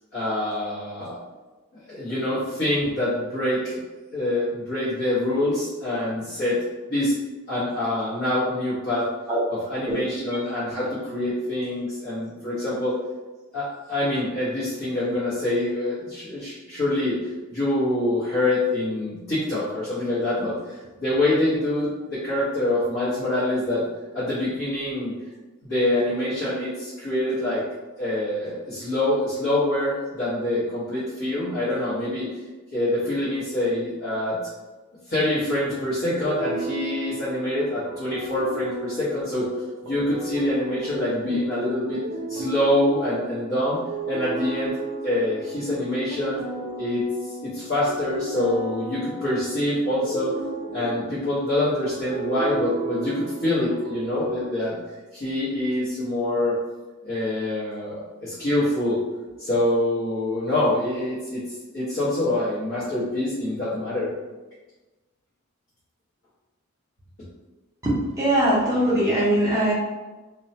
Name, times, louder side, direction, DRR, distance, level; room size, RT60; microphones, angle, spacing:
voice 1, 0.1-1.2 1.9-3.8 4.1-6.6 6.9-7.1 7.5-9.1 9.7-13.0 13.5-23.8 24.1-25.1 25.6-27.6 28.0-32.3 32.7-34.4 35.1-39.5 39.8-42.0 42.3-43.8 44.1-46.4 46.8-50.3 50.7-54.8 55.1-56.6 57.0-59.0 59.4-64.1, left 1 dB, 55° left, -13 dB, 0.9 m, -25 dB
sound 1, 36.2-54.4, right 2 dB, 70° right, 0.3 m, -35 dB
voice 2, 67.8-69.7, right 1 dB, 15° right, -7 dB, 0.5 m, -21 dB
2.2 x 2.1 x 2.6 m, 1.2 s
head